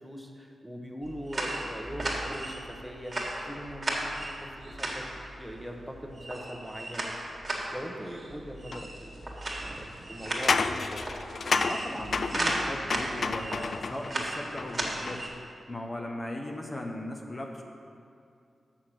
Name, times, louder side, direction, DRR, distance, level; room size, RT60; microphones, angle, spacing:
voice 1, 0.0-3.1 3.4-4.4 4.6-5.1 5.4-7.1 7.7-9.2 9.8-11.0, equal, 5° right, 2 dB, 1.1 m, -41 dB
sound 1, 1.0-15.3, right 1 dB, 40° right, 1.7 m, -36 dB
sound 2, 8.7-8.8 10.2-14.1 14.6-15.4, left 4 dB, 65° left, 0.3 m, -31 dB
voice 2, 11.6-15.2 15.7-17.6, left 1 dB, 35° left, 1 dB, 0.9 m, -38 dB
6.5 x 5.8 x 6.3 m, 2.4 s
supercardioid pair, 40°, 0 cm